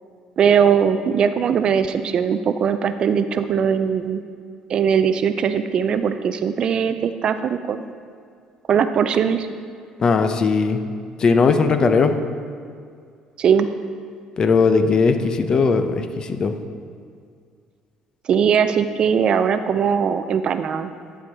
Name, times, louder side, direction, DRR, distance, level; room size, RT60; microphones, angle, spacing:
voice 1, 0.4-4.2 4.7-7.9 8.7-9.5 13.4-13.7 18.3-20.9, right 7 dB, 50° right, 10 dB, 0.4 m, -20 dB
voice 2, 10.0-10.8 11.2-12.2 14.4-16.5, left 4 dB, 40° left, 8 dB, 0.6 m, -18 dB
10.0 x 4.5 x 4.7 m, 2.2 s
cardioid pair, 100°, 2 cm